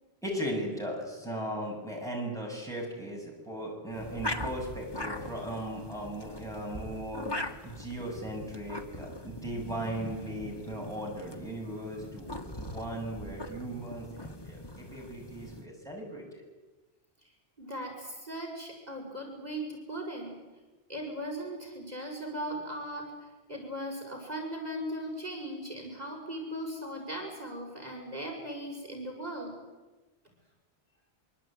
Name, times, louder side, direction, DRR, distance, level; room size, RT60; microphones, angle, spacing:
voice 1, 0.2-7.3 7.6-16.4, right 1 dB, 5° left, -1 dB, 7.9 m, -37 dB
sound 1, 3.9-15.7, left 1 dB, 20° left, 1.7 m, -41 dB
voice 2, 17.6-20.3 20.9-29.5, equal, 40° right, -1 dB, 6.0 m, -38 dB
24.5 x 24.5 x 9.2 m, 1.2 s
omnidirectional pair, 1.1 m